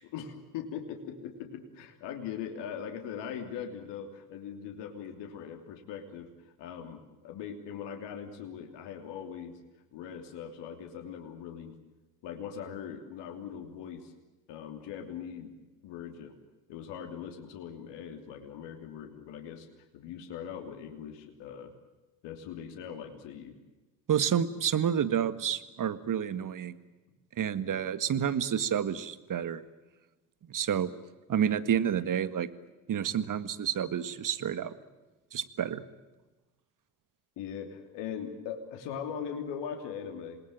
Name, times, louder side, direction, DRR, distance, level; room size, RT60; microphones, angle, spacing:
voice 1, 0.0-9.6 9.9-11.8 12.2-14.1 14.5-15.5 15.8-16.4 16.7-21.7 22.2-23.6 37.4-40.4, left 8 dB, 70° left, 5 dB, 3.2 m, -41 dB
voice 2, 24.1-26.8 27.4-29.6 30.5-30.9 31.3-32.5 32.9-34.7 35.3-35.8, right 9 dB, 45° right, 13 dB, 1.9 m, -29 dB
27.5 x 20.0 x 9.0 m, 1.1 s
hypercardioid pair, 60°, 44 cm